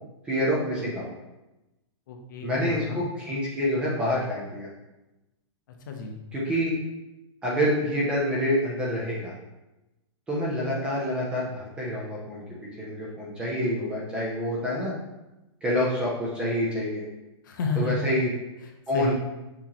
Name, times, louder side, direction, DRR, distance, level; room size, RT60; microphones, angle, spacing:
voice 1, 0.2-1.1 2.4-4.7 6.3-6.7 7.4-9.3 10.3-12.4 12.8-14.9 15.6-17.0 17.8-18.3 18.9-19.1, equal, 5° right, -5 dB, 0.5 m, -27 dB
voice 2, 2.1-3.1 5.8-6.2 17.4-17.9 18.6-19.1, left 4 dB, 45° left, 2 dB, 0.7 m, -31 dB
5.9 x 3.0 x 2.9 m, 0.98 s
hypercardioid pair, 175°, 15 cm